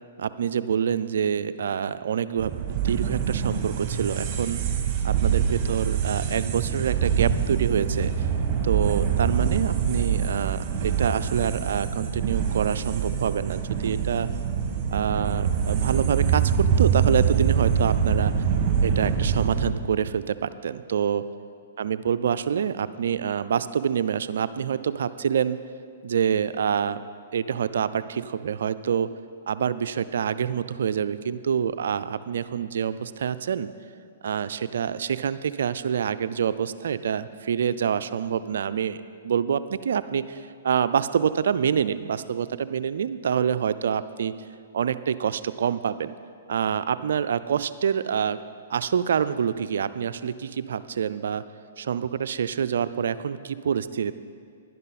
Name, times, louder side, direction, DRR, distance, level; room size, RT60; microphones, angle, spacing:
voice 1, 0.2-4.6 5.0-8.3 8.6-14.3 14.9-18.3 18.8-21.2 21.8-25.6 26.0-27.0 27.3-29.1 29.5-33.7 34.2-44.3 44.7-46.1 46.5-48.4 48.7-51.4 51.8-54.1, right 8 dB, 65° right, 14 dB, 0.4 m, -26 dB
sound 1, 2.4-19.7, right 7 dB, 35° right, 1.6 m, -25 dB
11.0 x 11.0 x 4.1 m, 2.4 s
hypercardioid pair, 125°, 0 cm